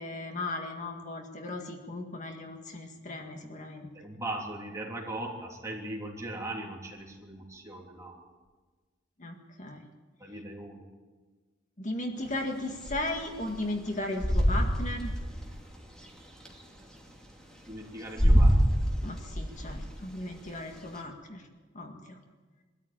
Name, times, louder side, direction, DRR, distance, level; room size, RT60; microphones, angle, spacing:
voice 1, 0.0-3.9 9.2-9.8 11.8-15.1 19.0-21.4 21.7-22.2, left 2 dB, 40° left, 3 dB, 2.0 m, -36 dB
voice 2, 3.9-8.2 10.2-10.9 17.6-18.8, right 2 dB, 15° right, -1 dB, 3.6 m, -39 dB
sound 1, 12.3-16.5 17.1-17.2 17.6-21.0, equal, 5° left, 2.8 m, -25 dB
23.0 x 13.5 x 9.1 m, 1.4 s
head